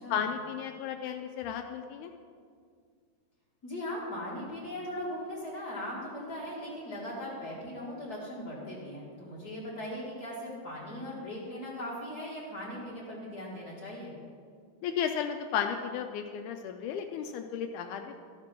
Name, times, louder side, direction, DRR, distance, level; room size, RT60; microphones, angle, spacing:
voice 1, 0.1-2.1 14.8-18.2, left 8 dB, 90° left, 5 dB, 1.8 m, -34 dB
voice 2, 3.6-14.1, left 1 dB, 35° left, -6 dB, 1.8 m, -39 dB
12.0 x 6.7 x 5.9 m, 2.1 s
omnidirectional pair, 4.1 m